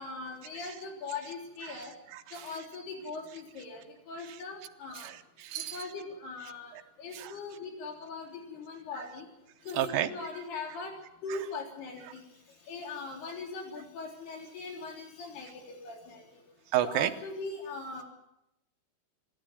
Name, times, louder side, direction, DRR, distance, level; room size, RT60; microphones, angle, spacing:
voice 1, 0.0-1.9 2.3-5.1 5.7-6.7 7.0-9.3 9.7-10.9 11.2-12.2 12.7-16.2 16.8-18.0, left 3 dB, 60° left, 1 dB, 5.6 m, -40 dB
voice 2, 1.6-2.7 3.3-3.4 4.2-4.7 4.9-5.9 6.4-6.8 7.1-7.4 8.9-9.2 9.7-10.4 10.7-10.8 11.3-11.5 12.0-12.1 16.7-17.1, right 12 dB, 80° right, 6 dB, 2.1 m, -35 dB
25.0 x 11.5 x 9.6 m, 0.84 s
omnidirectional pair, 5.5 m